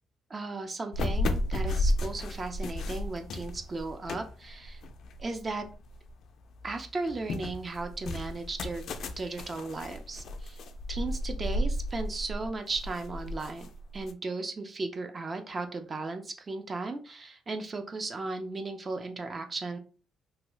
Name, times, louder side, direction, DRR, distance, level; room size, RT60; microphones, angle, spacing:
voice 1, 0.3-4.8 5.2-5.7 6.6-8.9 9.2-10.6 10.9-13.6 13.9-19.8, right 3 dB, 35° right, 6 dB, 0.6 m, -36 dB
sound 1, 0.9-6.1 6.5-14.1, left 1 dB, 65° left, 0.4 m, -33 dB
2.8 x 2.3 x 3.0 m, 0.36 s
cardioid pair, 90°, 0 cm